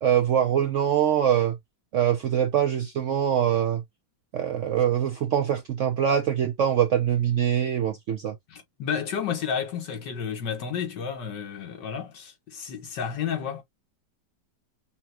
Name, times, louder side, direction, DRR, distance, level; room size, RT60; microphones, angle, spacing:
voice 1, 0.0-1.6 1.9-3.8 4.3-8.3, right 9 dB, 70° right, 0.7 m, -23 dB
voice 2, 8.5-13.6, left 7 dB, 75° left, 1.9 m, -31 dB
5.6 x 2.2 x 2.8 m
omnidirectional pair, 1.9 m